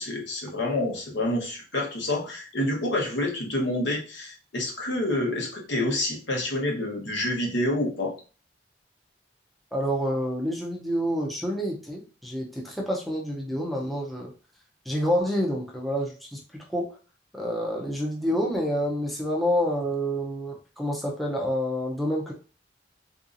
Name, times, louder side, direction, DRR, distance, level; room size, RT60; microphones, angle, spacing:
voice 1, 0.0-8.1, left 1 dB, 75° left, 0 dB, 1.0 m, -28 dB
voice 2, 9.7-14.3 14.9-16.4 16.7-16.9 17.3-22.3, equal, ahead, -2 dB, 0.5 m, -28 dB
3.8 x 2.7 x 2.5 m, 0.36 s
head